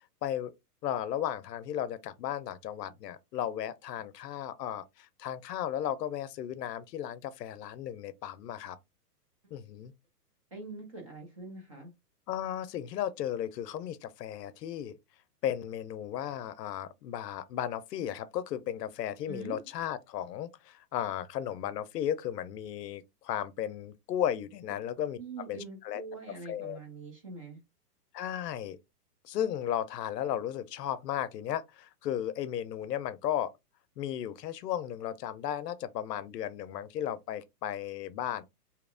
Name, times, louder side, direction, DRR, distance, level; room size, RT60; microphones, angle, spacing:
voice 1, 0.2-0.5 0.8-8.8 9.5-9.9 12.3-15.0 15.4-26.0 26.5-26.8 28.1-28.8 29.2-33.5 34.0-38.4, left 10 dB, 80° left, 0.6 m, -35 dB
voice 2, 10.5-11.9 19.3-19.7 25.2-27.6, right 3 dB, 25° right, 0.5 m, -44 dB
2.8 x 2.1 x 2.4 m
hypercardioid pair, 155°, 48 cm